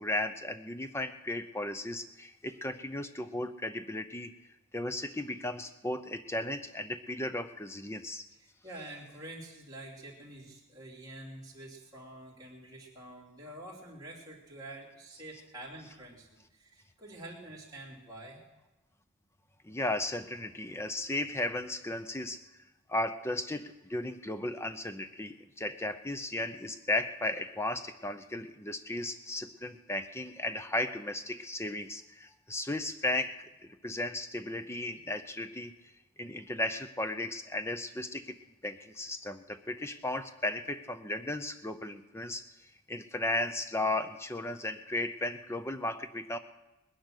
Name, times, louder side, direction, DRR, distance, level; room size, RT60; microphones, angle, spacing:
voice 1, 0.0-4.3 4.7-8.2 19.6-22.4 22.9-35.7 36.2-38.4 38.6-42.4 42.9-46.4, left 2 dB, 10° left, 10 dB, 0.6 m, -35 dB
voice 2, 8.3-18.4, right 1 dB, 15° right, -5 dB, 3.3 m, -47 dB
20.0 x 10.5 x 6.4 m, 1.0 s
head